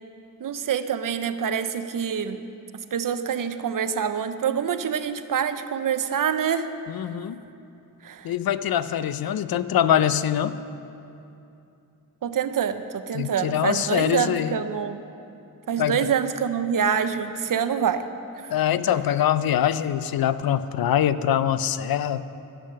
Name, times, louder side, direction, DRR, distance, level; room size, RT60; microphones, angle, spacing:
voice 1, 0.4-2.4 2.7-6.7 8.0-8.3 12.2-15.0 15.7-18.1, right 7 dB, 60° right, 10 dB, 0.6 m, -26 dB
voice 2, 6.9-7.4 8.2-10.6 13.1-14.5 15.8-16.0 18.5-22.2, left 10 dB, 75° left, 14 dB, 0.5 m, -23 dB
12.0 x 8.4 x 6.5 m, 2.7 s
wide cardioid pair, 105°, 36 cm